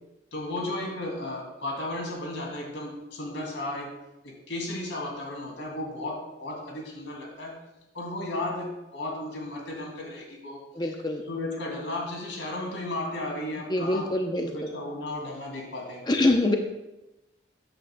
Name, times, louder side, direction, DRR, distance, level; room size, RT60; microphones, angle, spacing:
voice 1, 0.3-3.9 4.2-7.6 7.9-10.9 11.3-14.1 14.4-16.0, left 1 dB, 85° left, -1 dB, 2.5 m, -34 dB
voice 2, 10.7-11.2 13.7-14.5 16.1-16.6, left 2 dB, 25° left, 3 dB, 0.6 m, -24 dB
13.0 x 8.9 x 2.2 m, 0.98 s
head